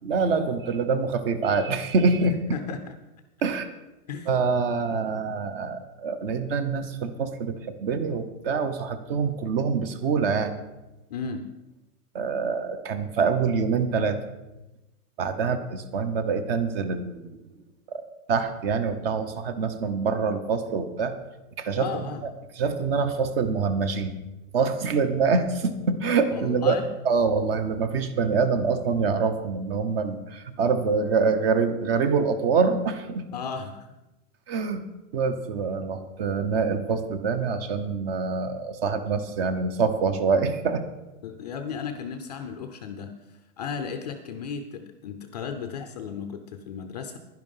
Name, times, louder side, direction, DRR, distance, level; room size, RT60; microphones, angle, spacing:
voice 1, 0.0-2.6 3.4-3.7 4.3-10.5 12.1-14.2 15.2-17.4 17.9-18.0 18.3-21.1 21.6-22.0 22.6-24.1 24.5-26.8 27.0-33.3 34.5-34.9 35.1-40.8, right 5 dB, 40° right, 11 dB, 1.0 m, -25 dB
voice 2, 2.2-2.9 4.1-4.3 11.1-11.5 21.8-22.2 26.3-26.9 33.3-33.9 41.2-47.2, left 6 dB, 30° left, 7 dB, 0.5 m, -35 dB
11.0 x 10.5 x 5.5 m, 1.0 s
hypercardioid pair, 160°, 46 cm